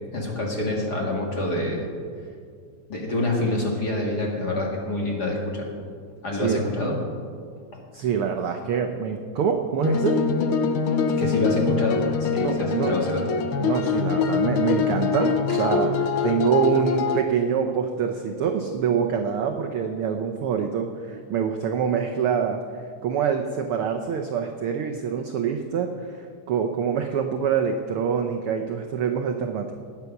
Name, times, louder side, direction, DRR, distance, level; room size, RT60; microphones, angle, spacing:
voice 1, 0.1-1.9 2.9-5.7 6.2-7.0 7.7-7.8 11.2-13.2 15.5-15.6, left 1 dB, 35° left, -1 dB, 2.1 m, -27 dB
voice 2, 7.9-10.2 12.4-12.9 13.6-22.6 23.0-25.9 26.5-29.7, right 7 dB, 80° right, 4 dB, 1.2 m, -25 dB
sound 1, 9.8-17.2, left 5 dB, 80° left, 1.2 m, -24 dB
19.0 x 8.3 x 5.9 m, 2.1 s
omnidirectional pair, 3.4 m